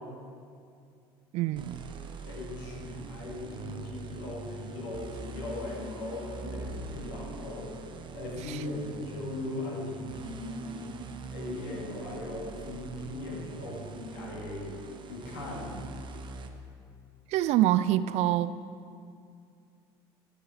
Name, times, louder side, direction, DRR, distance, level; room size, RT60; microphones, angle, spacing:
voice 1, 1.3-1.8 17.3-18.6, right 13 dB, 60° right, 14 dB, 0.4 m, -25 dB
sound 1, 1.5-16.5, right 4 dB, 40° right, 0.8 m, -43 dB
voice 2, 2.2-7.7 8.1-11.0 11.3-14.7 15.1-15.8, left 2 dB, 80° left, -2 dB, 2.1 m, -38 dB
13.5 x 5.7 x 4.3 m, 2.3 s
hypercardioid pair, 75°, 13 cm